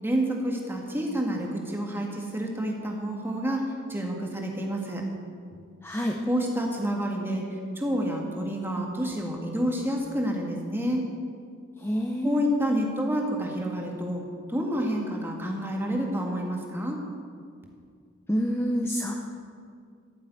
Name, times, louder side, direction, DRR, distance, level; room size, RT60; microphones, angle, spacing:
voice 1, 0.0-5.0 6.3-11.1 12.2-14.2 14.5-17.0, equal, 10° right, 0 dB, 1.8 m, -29 dB
voice 2, 5.8-6.2 11.8-12.4 18.3-19.1, equal, 10° left, 1 dB, 0.7 m, -27 dB
14.0 x 7.4 x 9.3 m, 2.3 s
head